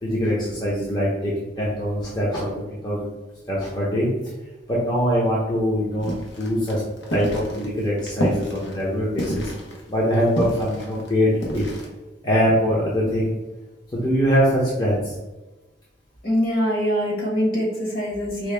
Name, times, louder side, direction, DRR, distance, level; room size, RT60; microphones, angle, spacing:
voice 1, 0.0-3.1 3.5-4.1 4.7-6.8 7.1-9.5 9.9-11.6 12.2-13.3 13.9-15.1, equal, 20° left, -6 dB, 0.7 m, -23 dB
sound 1, 6.0-11.9, equal, 75° left, 0.9 m, -29 dB
voice 2, 16.2-18.5, equal, 50° left, -3 dB, 1.2 m, -23 dB
4.5 x 2.2 x 3.3 m, 1.1 s
head